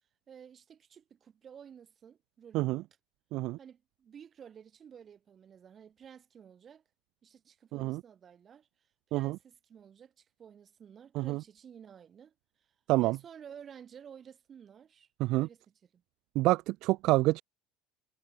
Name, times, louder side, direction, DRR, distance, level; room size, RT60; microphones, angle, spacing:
voice 1, 0.3-2.9 3.6-6.8 7.2-8.7 9.1-12.3 13.0-16.0, right 8 dB, 35° right, 3.4 m, -53 dB
voice 2, 16.4-17.4, right 19 dB, 60° right, 0.4 m, -27 dB
supercardioid pair, 100°, 0 cm